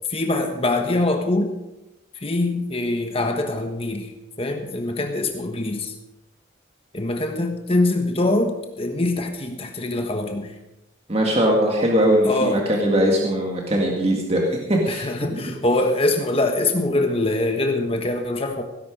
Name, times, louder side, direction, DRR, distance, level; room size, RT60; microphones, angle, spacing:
voice 1, 0.1-1.5 2.1-4.1 4.4-5.9 6.9-10.6 12.3-12.6 14.9-18.6, left 2 dB, 30° left, 5 dB, 1.2 m, -23 dB
voice 2, 11.1-15.5, equal, 30° right, -1 dB, 1.9 m, -21 dB
17.0 x 10.5 x 5.2 m, 0.97 s
head